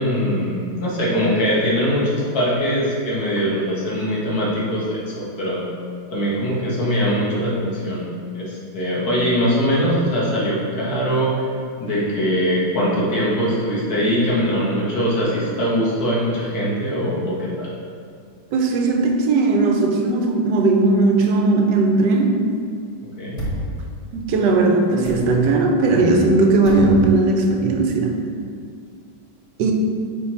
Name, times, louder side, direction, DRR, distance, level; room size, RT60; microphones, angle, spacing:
voice 1, 0.0-5.6 6.1-8.0 8.3-11.4 11.8-17.7 23.2-23.4, equal, 60° left, -7 dB, 1.9 m, -22 dB
voice 2, 18.5-22.4 24.1-28.3 29.6-29.7, right 3 dB, 85° right, 3 dB, 1.3 m, -17 dB
sound 1, 23.4-23.8 25.0-25.3 26.6-27.0, equal, 30° left, 0.7 m, -28 dB
5.5 x 4.5 x 4.2 m, 2.2 s
omnidirectional pair, 1.8 m